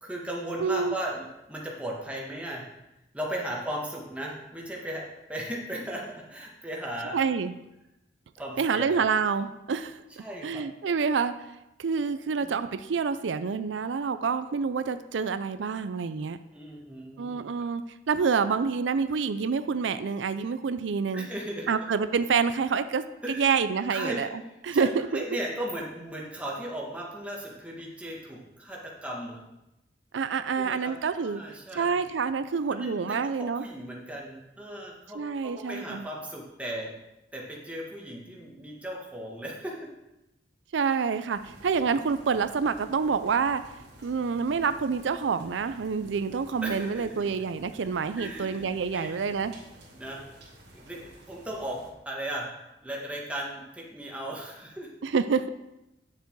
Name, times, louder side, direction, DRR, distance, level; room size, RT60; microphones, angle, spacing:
voice 1, 0.0-2.6 3.1-7.2 8.4-8.9 10.2-10.6 12.3-12.6 16.5-17.4 21.1-21.8 23.2-23.5 23.9-24.2 24.7-29.4 30.5-30.9 31.2-31.9 32.7-36.9 37.3-39.9 46.6-47.2 48.2-49.1 49.9-50.2 50.7-51.8 52.0-52.5 52.8-54.9, right 1 dB, 5° right, -3 dB, 1.7 m, -36 dB
voice 2, 0.6-1.0 7.1-7.5 8.6-10.0 10.4-11.3 11.8-16.4 17.2-17.8 18.1-21.3 21.7-24.3 24.6-25.2 30.1-31.4 31.7-33.6 35.1-36.1 40.7-43.6 44.0-49.5 55.0-55.5, right 5 dB, 90° right, 12 dB, 0.4 m, -27 dB
sound 1, 41.3-51.9, right 1 dB, 65° right, 2.7 m, -52 dB
9.5 x 6.8 x 4.6 m, 0.93 s
head